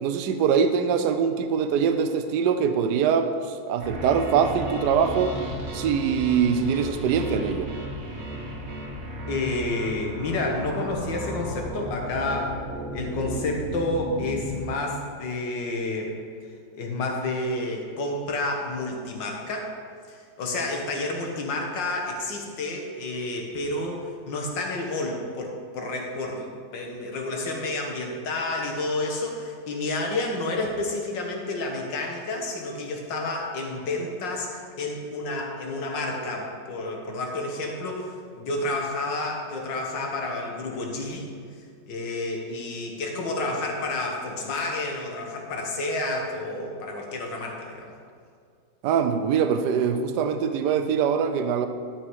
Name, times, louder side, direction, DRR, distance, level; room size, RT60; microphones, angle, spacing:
voice 1, 0.0-5.3 5.7-7.7 48.8-51.7, right 7 dB, 70° right, 8 dB, 1.2 m, -23 dB
sound 1, 3.8-14.6, equal, 40° right, 1.4 m, -34 dB
voice 2, 9.3-12.5 12.9-16.1 16.7-19.7 20.1-41.3 41.9-47.9, left 2 dB, 80° left, 1 dB, 2.0 m, -30 dB
11.5 x 6.3 x 4.7 m, 2.2 s
omnidirectional pair, 2.0 m